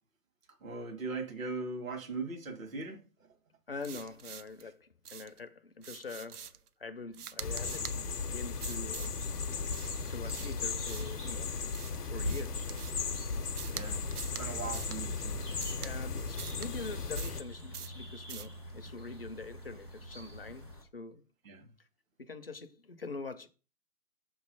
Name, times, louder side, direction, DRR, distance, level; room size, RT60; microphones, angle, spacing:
voice 1, 0.6-3.0 13.7-14.0 14.4-15.4 21.4-21.7, right 3 dB, 60° right, 1.6 m, -39 dB
voice 2, 3.7-6.5 6.8-9.3 10.1-11.6 12.1-12.9 14.6-14.9 15.8-21.2 22.2-23.5, left 3 dB, 40° left, 0.4 m, -44 dB
sound 1, 3.8-4.6 5.0-5.4 5.8-6.7 7.1-8.0 8.6-9.2 9.7-11.2 11.7-13.1 13.6-13.8 14.1-14.4 14.7-15.0 15.6-15.9 16.4-16.7 17.1-17.4 17.7-18.0 18.3-18.5, right 8 dB, 75° right, 0.6 m, -45 dB
sound 2, 7.4-17.4, left 5 dB, 80° left, 0.6 m, -36 dB
sound 3, 9.3-20.8, left 1 dB, 20° right, 0.5 m, -44 dB
5.8 x 3.1 x 5.3 m
figure-of-eight pair, 135°, 46 cm